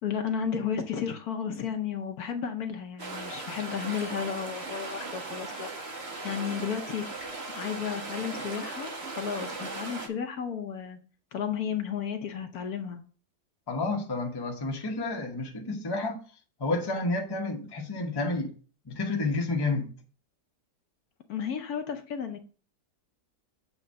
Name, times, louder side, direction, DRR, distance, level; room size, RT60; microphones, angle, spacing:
voice 1, 0.0-5.7 6.2-7.1 7.5-11.0 11.3-13.0 21.3-22.4, left 7 dB, 65° left, 1.2 m, -33 dB
sound 1, 3.0-10.1, right 3 dB, 40° right, 1.5 m, -38 dB
voice 2, 13.7-16.2 16.6-18.5 18.8-19.9, left 2 dB, 20° left, 0.8 m, -30 dB
7.8 x 3.1 x 6.3 m
omnidirectional pair, 1.9 m